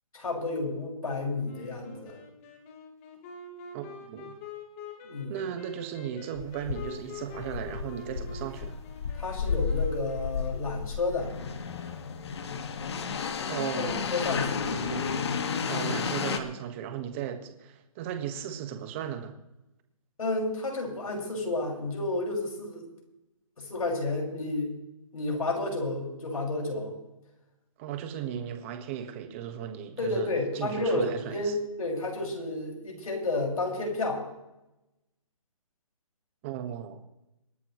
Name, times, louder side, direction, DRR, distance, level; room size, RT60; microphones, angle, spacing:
voice 1, 0.1-2.2 5.0-5.4 9.2-11.3 13.7-14.6 20.2-22.8 23.6-24.7 25.1-26.9 30.0-34.2, left 2 dB, 85° left, 0 dB, 6.0 m, -31 dB
Wind instrument woodwind instrument, 1.4-10.9, left 4 dB, 25° left, 2.2 m, -46 dB
voice 2, 3.7-4.4 5.3-8.8 13.5-14.1 14.6-15.2 15.7-19.4 27.8-30.3 30.5-31.6 36.4-37.0, right 9 dB, 20° right, 7 dB, 1.5 m, -36 dB
sound 1, 6.4-16.4, left 6 dB, 50° left, 1.7 m, -32 dB
27.0 x 11.5 x 3.2 m, 0.94 s
hypercardioid pair, 165°, 18 cm